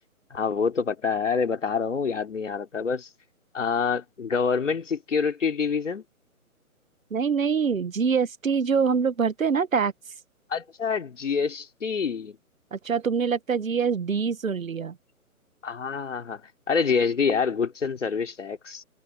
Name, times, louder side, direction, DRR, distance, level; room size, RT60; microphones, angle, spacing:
voice 1, 0.3-3.1 3.5-6.0 10.5-12.4 15.6-16.4 16.7-18.8, left 5 dB, 55° left, 3.6 m, -26 dB
voice 2, 7.1-9.9 12.7-15.0, right 6 dB, 65° right, 1.6 m, -24 dB
hypercardioid pair, 175°, 43 cm